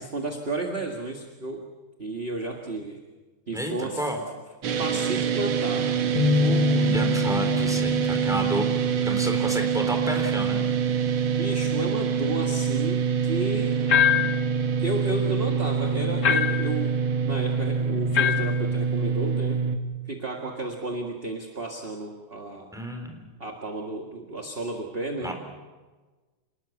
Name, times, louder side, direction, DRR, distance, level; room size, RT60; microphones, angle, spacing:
voice 1, 0.0-1.7 2.0-3.0 3.5-4.2 4.8-5.9 11.4-13.8 14.8-19.6 20.1-22.7 23.4-25.3, right 2 dB, 30° right, 2 dB, 1.9 m, -32 dB
voice 2, 3.5-4.2 6.4-8.7 9.0-10.6 22.7-23.2 25.2-25.3, equal, ahead, 4 dB, 3.5 m, -31 dB
sound 1, 4.6-19.8, right 6 dB, 75° right, 2.0 m, -25 dB
sound 2, 6.2-10.4 10.9-11.1 12.0-12.4, left 5 dB, 80° left, 2.2 m, -28 dB
sound 3, 13.9-14.4 16.2-16.7 18.1-18.6, left 9 dB, 55° left, 1.0 m, -22 dB
27.5 x 19.5 x 7.1 m, 1.3 s
omnidirectional pair, 2.2 m